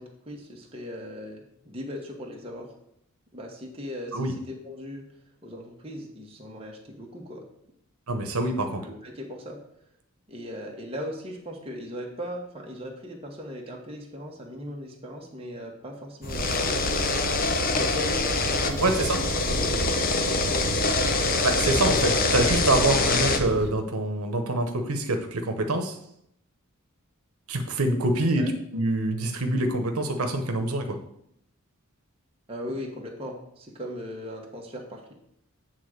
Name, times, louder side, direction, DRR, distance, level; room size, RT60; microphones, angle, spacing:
voice 1, 0.0-2.7 3.3-4.3 4.6-5.1 5.4-7.4 8.6-9.6 10.3-17.2 17.7-18.8 19.1-20.7 28.4-28.5 32.5-35.1, equal, 25° right, -1 dB, 1.4 m, -38 dB
voice 2, 8.1-8.8 18.8-19.2 21.4-26.0 27.5-31.0, right 2 dB, 85° right, 5 dB, 1.0 m, -25 dB
sound 1, 16.2-23.4, left 3 dB, 40° left, 0.7 m, -25 dB
sound 2, 16.3-23.7, right 4 dB, 50° right, 0.5 m, -33 dB
8.5 x 3.7 x 6.6 m, 0.73 s
head